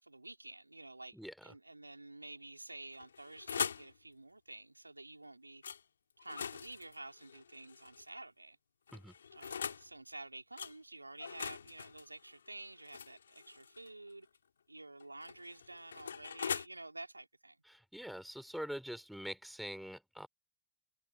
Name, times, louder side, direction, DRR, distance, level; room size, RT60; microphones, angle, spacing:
voice 1, 0.0-5.6 6.2-8.6 9.3-14.3 14.7-17.6, right 2 dB, 85° right, 4.1 m, -50 dB
voice 2, 1.1-1.5 8.9-9.1 17.7-20.3, equal, ahead, 4.9 m, -44 dB
sound 1, 2.9-3.9 5.6-5.8 6.2-8.1 8.9-9.9 10.6-10.7 11.2-13.9 15.0-16.7, left 7 dB, 70° left, 3.6 m, -42 dB
figure-of-eight pair, 90°, 0 cm